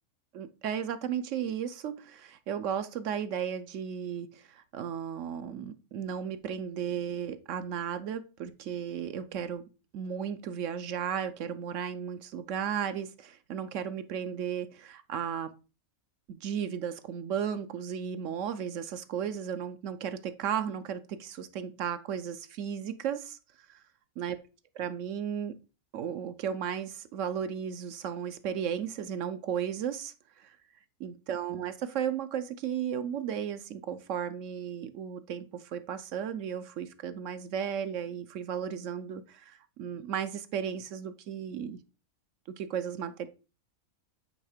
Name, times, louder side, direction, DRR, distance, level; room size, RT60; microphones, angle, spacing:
voice 1, 0.3-9.7 9.9-15.5 16.3-23.4 23.7-23.8 24.2-24.4 24.8-25.5 25.9-30.6 31.0-41.8 42.5-43.3, right 8 dB, 65° right, 0.9 m, -35 dB
8.8 x 3.5 x 4.9 m
omnidirectional pair, 1.6 m